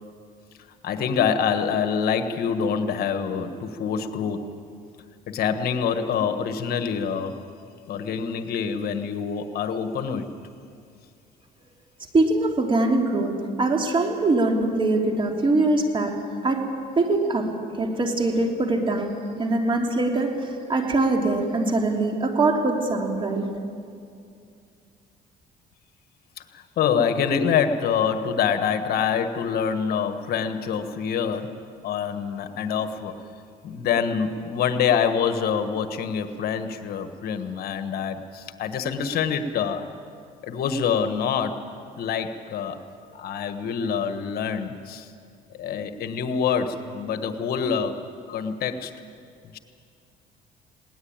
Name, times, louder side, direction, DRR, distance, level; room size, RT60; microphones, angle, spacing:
voice 1, 0.8-4.5 5.3-7.4 7.9-10.3 26.5-31.6 31.8-33.1 33.6-39.9 40.4-41.6 42.0-42.8 43.1-45.1 45.5-48.0 48.3-48.9 49.4-49.6, left 7 dB, 65° left, 8 dB, 1.4 m, -26 dB
voice 2, 12.1-16.1 16.4-16.6 17.0-17.5 17.8-23.4, right 2 dB, 30° right, 2 dB, 3.2 m, -23 dB
20.5 x 18.5 x 8.8 m, 2.4 s
cardioid pair, 110°, 17 cm